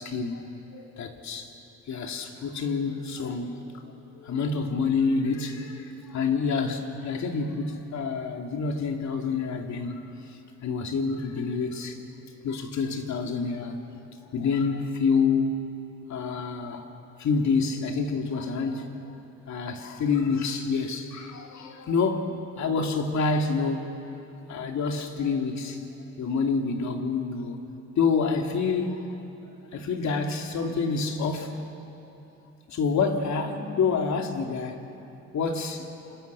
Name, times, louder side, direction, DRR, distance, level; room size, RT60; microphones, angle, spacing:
voice 1, 0.0-1.5 1.9-10.0 10.3-12.0 12.4-13.8 14.2-15.6 16.1-16.9 17.2-19.2 19.5-24.0 24.5-25.9 26.2-27.7 28.0-29.1 29.7-31.6 32.7-34.8 35.3-35.9, left 4 dB, 65° left, 3.0 m, -28 dB
29.0 x 28.5 x 7.1 m
cardioid pair, 90°, 30 cm